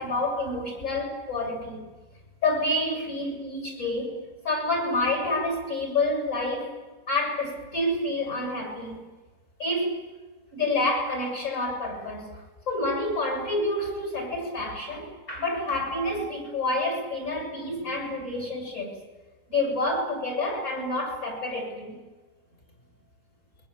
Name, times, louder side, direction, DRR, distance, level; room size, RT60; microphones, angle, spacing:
voice 1, 0.0-1.8 2.4-4.2 4.4-6.7 7.1-9.0 9.6-10.1 10.5-12.4 12.7-19.0 19.5-22.0, left 2 dB, 45° left, 3 dB, 8.2 m, -28 dB
27.5 x 23.5 x 8.9 m, 1.3 s
omnidirectional pair, 1.9 m